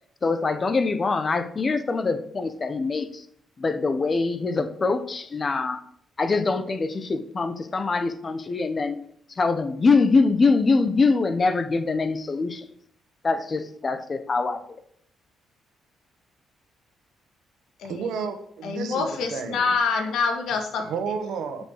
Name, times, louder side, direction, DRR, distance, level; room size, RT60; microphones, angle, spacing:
voice 1, 0.2-3.2 3.6-5.8 6.2-9.0 9.4-12.6 13.2-14.6, left 4 dB, 35° left, 11 dB, 1.1 m, -23 dB
voice 2, 17.8-19.7 20.8-21.6, right 6 dB, 80° right, 7 dB, 1.4 m, -32 dB
voice 3, 18.6-20.8, left 5 dB, 75° left, 5 dB, 1.8 m, -26 dB
7.4 x 6.4 x 6.5 m, 0.65 s
cardioid pair, 90°, 0 cm